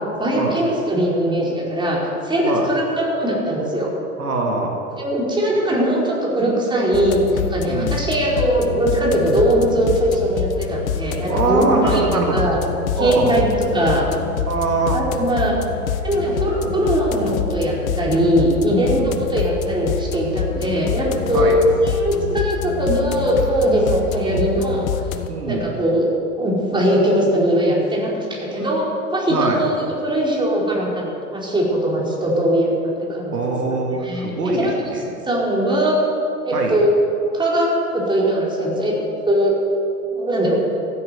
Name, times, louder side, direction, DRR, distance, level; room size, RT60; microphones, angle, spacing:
voice 1, 0.2-3.9 5.0-12.0 12.3-12.6 13.0-13.5 13.7-14.0 14.9-15.5 16.0-24.9 25.5-28.9 29.1-31.0 31.3-33.5 33.9-34.7 35.2-36.0 36.4-36.9 37.3-37.7 37.9-38.9 39.2-39.5 40.1-40.6, right 1 dB, 10° right, -4 dB, 4.5 m, -20 dB
voice 2, 4.2-4.8 7.6-8.0 11.3-12.5 13.0-13.4 14.5-15.0 18.9-19.1 21.3-21.6 25.3-25.7 28.6-28.7 29.3-29.6 33.3-35.1 36.5-36.8, right 3 dB, 80° right, 1 dB, 2.2 m, -22 dB
sound 1, 6.9-25.3, left 8 dB, 60° left, 1.1 m, -26 dB
14.0 x 9.9 x 8.1 m, 2.7 s
figure-of-eight pair, 95°, 46 cm